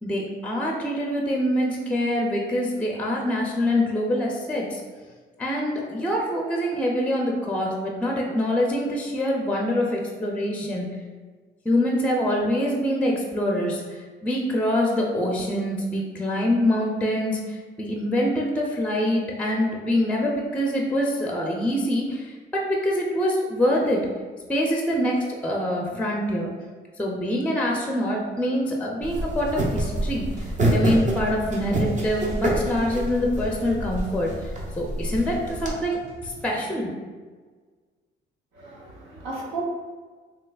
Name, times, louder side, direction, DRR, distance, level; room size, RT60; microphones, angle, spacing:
voice 1, 0.0-4.8 5.4-10.9 11.6-24.1 24.5-26.5 27.0-36.0 36.2-36.9, equal, 5° left, -1 dB, 0.5 m, -25 dB
sound 1, 29.0-35.7, right 1 dB, 40° right, 0.7 m, -27 dB
sound 2, 29.3-36.5, equal, 60° right, 1.3 m, -42 dB
voice 2, 38.5-39.6, right 3 dB, 90° right, -3 dB, 0.8 m, -35 dB
3.2 x 3.1 x 2.3 m, 1.5 s
cardioid pair, 90°, 20 cm